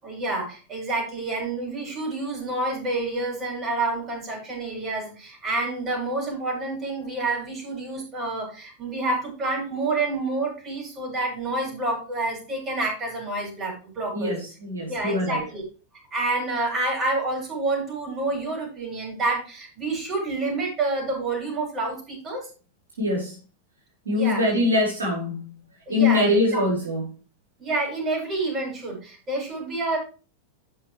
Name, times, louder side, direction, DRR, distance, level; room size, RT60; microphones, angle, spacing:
voice 1, 0.0-14.4 14.9-15.6 16.1-22.5 24.1-24.4 25.9-26.7 27.6-30.0, right 2 dB, 25° right, 6.1 m, -28 dB
voice 2, 14.1-15.4 23.0-23.4 24.1-25.5 25.9-27.0, left 2 dB, 75° right, 3.7 m, -23 dB
14.0 x 5.8 x 3.3 m
figure-of-eight pair, 90°, 0 cm